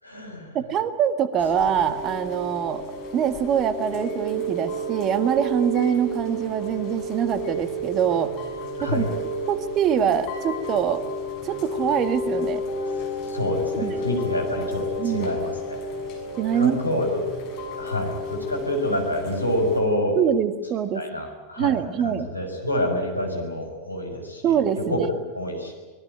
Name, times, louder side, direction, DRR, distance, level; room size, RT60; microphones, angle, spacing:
voice 1, 0.0-0.6 8.8-9.1 13.3-15.8 16.5-17.2 17.8-20.2 20.9-25.0 25.3-25.7, left 1 dB, 85° left, 2 dB, 5.9 m, -27 dB
voice 2, 0.5-2.8 3.1-8.3 8.8-9.0 9.5-11.0 11.4-12.6 13.7-14.0 15.0-15.4 16.4-17.0 20.2-21.0 21.6-22.3 24.4-25.1, right 8 dB, 30° right, 12 dB, 1.7 m, -24 dB
Chime / Rain, 1.4-19.8, equal, 40° left, 6.6 m, -31 dB
24.5 x 20.5 x 9.3 m, 1.4 s
figure-of-eight pair, 90°, 0 cm